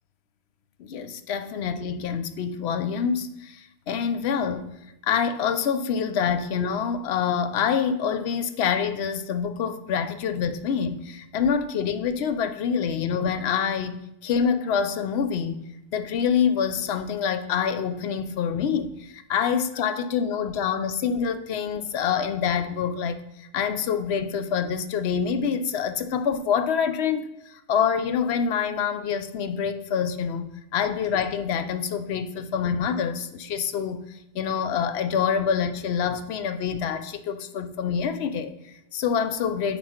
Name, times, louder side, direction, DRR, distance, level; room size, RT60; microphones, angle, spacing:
voice 1, 0.8-4.7 5.0-15.6 15.9-39.8, left 7 dB, 65° left, 0.9 m, -26 dB
9.2 x 4.3 x 4.4 m
omnidirectional pair, 1.2 m